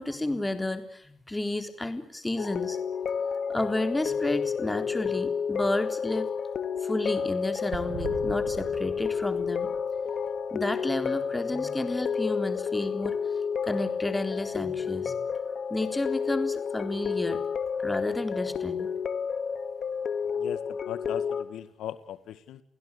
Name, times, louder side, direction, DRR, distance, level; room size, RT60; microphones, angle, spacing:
voice 1, 0.0-2.8 3.5-6.3 6.8-9.7 10.5-13.2 13.6-15.2 15.7-17.4 17.8-18.9, left 2 dB, 10° left, 8 dB, 3.7 m, -31 dB
sound 1, 2.4-21.4, left 6 dB, 55° left, 2.2 m, -31 dB
sound 2, 7.7-11.5 11.8-11.9 12.0-12.1, right 8 dB, 85° right, 3.2 m, -42 dB
voice 2, 20.4-22.6, left 11 dB, 80° left, 13 dB, 1.8 m, -38 dB
29.5 x 16.5 x 9.9 m, 0.65 s
cardioid pair, 90°, 0 cm